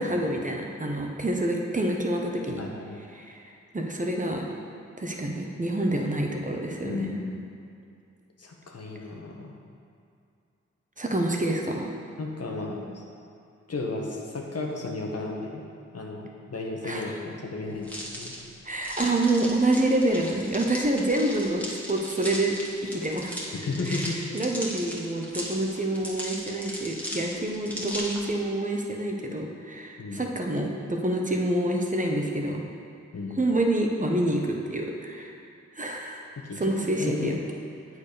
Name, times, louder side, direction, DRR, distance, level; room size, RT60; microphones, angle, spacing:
voice 1, 0.0-2.6 3.1-3.4 3.7-4.4 5.0-7.2 11.0-11.9 16.8-17.1 18.6-22.5 22.9-23.4 23.9-32.6 33.4-35.3 35.8-36.2 36.6-37.4, right 1 dB, 25° right, 1 dB, 1.2 m, -27 dB
voice 2, 2.6-3.0 6.8-7.4 8.4-9.5 12.2-13.0 13.7-15.6 15.9-18.3 23.5-24.2 30.0-30.2 33.1-33.5 36.4-37.4, left 3 dB, 55° left, 0 dB, 1.3 m, -34 dB
sound 1, 17.8-28.4, equal, 5° left, 1.8 m, -37 dB
8.2 x 4.7 x 5.1 m, 2.5 s
cardioid pair, 40°, 29 cm